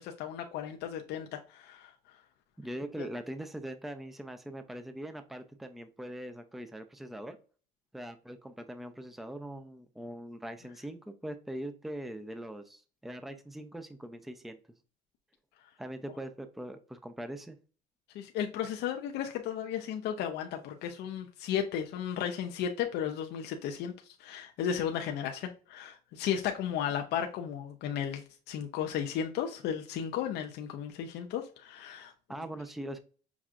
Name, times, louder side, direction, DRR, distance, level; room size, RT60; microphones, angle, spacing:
voice 1, 0.0-1.9 3.0-3.1 18.1-32.1, left 9 dB, 80° left, 0.6 m, -34 dB
voice 2, 2.6-7.4 7.9-14.6 15.8-17.6 32.3-33.0, right 1 dB, ahead, 0.5 m, -41 dB
5.9 x 2.3 x 2.4 m
cardioid pair, 110°, 17 cm